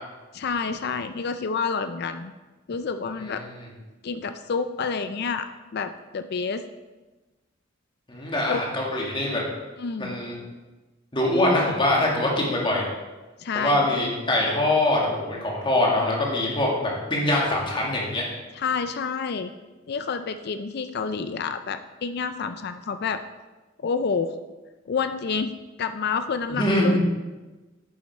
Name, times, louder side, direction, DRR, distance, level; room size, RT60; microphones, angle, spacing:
voice 1, 0.3-2.3 2.7-3.4 4.0-6.6 8.5-8.6 9.8-10.2 13.4-14.0 18.5-19.5 19.9-23.2 23.8-24.3 24.9-25.5 25.8-27.0, left 5 dB, 55° left, 9 dB, 0.4 m, -29 dB
voice 2, 8.1-9.4 10.0-10.4 11.1-12.9 13.6-18.2 26.5-27.0, left 1 dB, 25° left, -2 dB, 2.0 m, -23 dB
9.6 x 7.3 x 4.3 m, 1.2 s
head